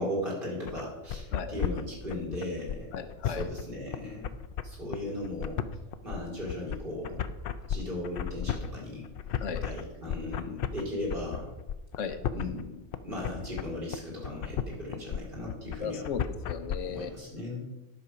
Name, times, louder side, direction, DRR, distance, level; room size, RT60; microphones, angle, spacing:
voice 1, 0.0-2.9 3.2-4.3 4.6-5.6 6.0-7.2 7.7-9.1 9.6-11.5 12.3-12.8 13.0-16.0 16.8-17.6, left 1 dB, 45° right, -3 dB, 2.8 m, -37 dB
sound 1, 0.7-16.8, left 8 dB, 60° left, 0.6 m, -34 dB
voice 2, 2.9-3.5 9.4-9.6 12.0-12.2 15.8-17.1, left 6 dB, 80° left, 9 dB, 1.1 m, -36 dB
10.5 x 6.1 x 5.1 m, 1.0 s
omnidirectional pair, 1.3 m